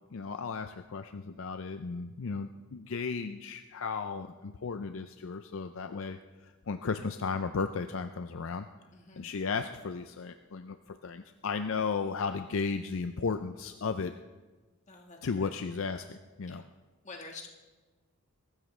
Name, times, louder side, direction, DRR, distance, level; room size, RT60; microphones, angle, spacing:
voice 1, 0.0-6.2 6.7-8.7 9.2-14.1 15.2-16.6, left 5 dB, 60° left, 9 dB, 0.5 m, -35 dB
voice 2, 8.9-9.2 14.9-15.5 16.5-16.6 17.0-17.5, left 3 dB, 30° left, 2 dB, 1.6 m, -47 dB
22.0 x 13.0 x 3.3 m, 1.2 s
head